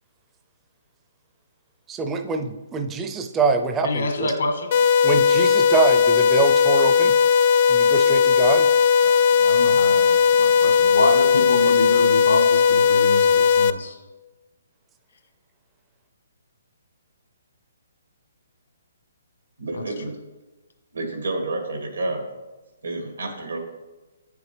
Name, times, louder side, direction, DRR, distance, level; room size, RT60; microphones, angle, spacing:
voice 1, 1.9-4.3 5.0-7.1 7.7-8.7, right 4 dB, 15° right, 6 dB, 0.5 m, -24 dB
voice 2, 3.8-4.7 9.0-14.0 19.7-19.8, left 2 dB, 75° left, 5 dB, 1.4 m, -27 dB
sound 1, 4.7-13.7, left 6 dB, 45° left, 0.3 m, -17 dB
voice 3, 19.6-20.2 20.9-22.3 22.8-23.6, right 2 dB, 90° right, 2 dB, 2.0 m, -29 dB
8.0 x 6.9 x 3.3 m, 1.2 s
hypercardioid pair, 150°, 0 cm